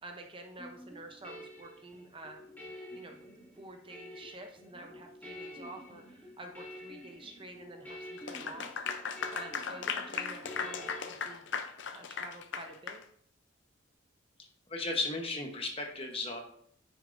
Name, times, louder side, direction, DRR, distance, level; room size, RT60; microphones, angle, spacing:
voice 1, 0.0-3.2 3.5-11.4 11.9-13.0, right 2 dB, 25° right, 4 dB, 0.7 m, -49 dB
sound 1, 0.6-11.1, equal, 10° left, 2.4 m, -48 dB
Clapping / Applause, 8.2-13.0, left 6 dB, 60° left, 0.6 m, -37 dB
voice 2, 14.7-16.4, left 3 dB, 25° left, 3 dB, 1.0 m, -35 dB
9.6 x 6.5 x 2.6 m, 0.65 s
head